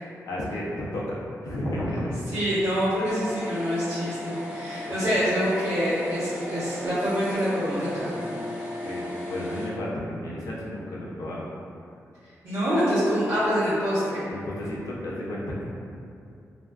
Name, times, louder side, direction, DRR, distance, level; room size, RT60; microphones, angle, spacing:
voice 1, 0.0-2.5 4.9-5.1 7.9-8.4 8.8-11.4 14.3-15.6, left 1 dB, 90° left, -5 dB, 0.5 m, -33 dB
voice 2, 2.3-8.1 12.4-14.3, equal, 50° right, -16 dB, 0.9 m, -26 dB
sound 1, 3.1-9.7, left 1 dB, 25° right, 0.7 m, -36 dB
2.5 x 2.3 x 2.2 m, 2.5 s
wide cardioid pair, 170°, 6 cm